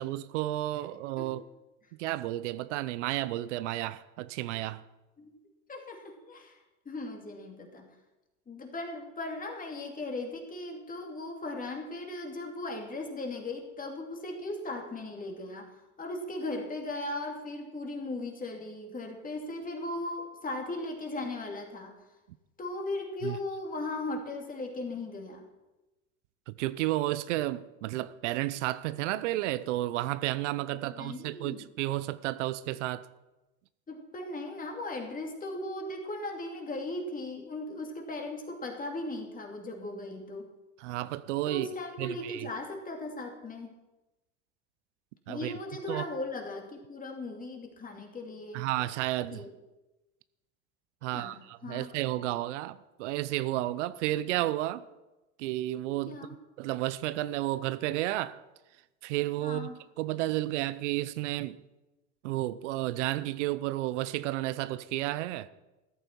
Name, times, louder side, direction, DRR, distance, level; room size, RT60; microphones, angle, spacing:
voice 1, 0.0-1.5 2.0-4.8 23.2-23.4 26.5-33.1 40.8-41.7 42.0-42.5 45.3-45.5 45.9-46.0 48.5-49.4 51.0-54.9 55.4-56.2 56.6-58.4 59.0-59.7 60.0-61.6 62.2-65.5, right 16 dB, 85° right, 0.6 m, -32 dB
voice 2, 5.7-6.6 6.9-7.9 8.5-15.7 16.0-22.0 22.6-25.5 30.9-31.6 33.9-40.5 41.5-43.7 45.3-48.6 49.3-49.5 51.1-51.9 56.1-56.4 59.4-59.8, left 2 dB, 25° left, 2.6 m, -38 dB
14.0 x 11.5 x 4.5 m
supercardioid pair, 100°, 35 cm